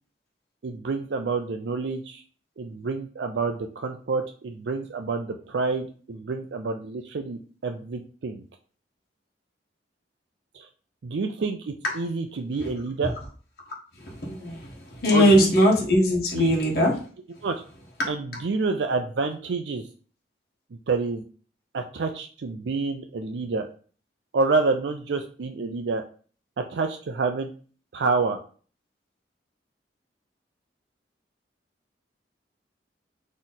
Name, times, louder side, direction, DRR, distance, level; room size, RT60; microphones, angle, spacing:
voice 1, 0.6-2.2 2.6-8.4 10.5-10.7 11.0-13.1 15.1-15.5 16.3-16.5 17.4-17.6 18.1-19.8 20.9-21.2 21.7-23.6 24.3-26.0 26.6-27.5 27.9-28.4, right 4 dB, 75° right, 5 dB, 0.5 m, -28 dB
voice 2, 13.7-17.0 18.0-18.4, equal, 60° left, -3 dB, 1.3 m, -22 dB
4.0 x 3.1 x 4.0 m, 0.41 s
head